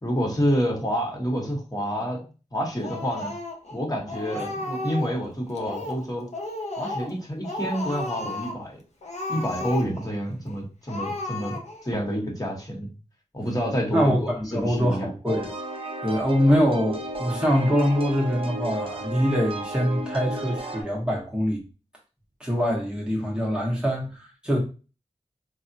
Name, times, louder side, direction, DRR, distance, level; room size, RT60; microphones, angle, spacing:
voice 1, 0.0-3.4 3.7-6.3 6.8-8.8 9.3-12.9 13.3-15.1, equal, 30° left, 1.1 m, -28 dB
Speech, 2.8-3.8 4.1-5.2 5.6-6.1 6.3-7.2 7.4-8.6 9.0-10.1 10.5-10.6 10.9-11.9, left 2 dB, 60° left, 0.7 m, -33 dB
voice 2, 13.9-15.5 16.0-21.6 22.4-24.6, equal, 5° right, 0.8 m, -24 dB
sound 1, 15.3-20.8, right 2 dB, 45° right, 0.6 m, -33 dB
3.4 x 2.1 x 2.6 m
cardioid pair, 45°, 13 cm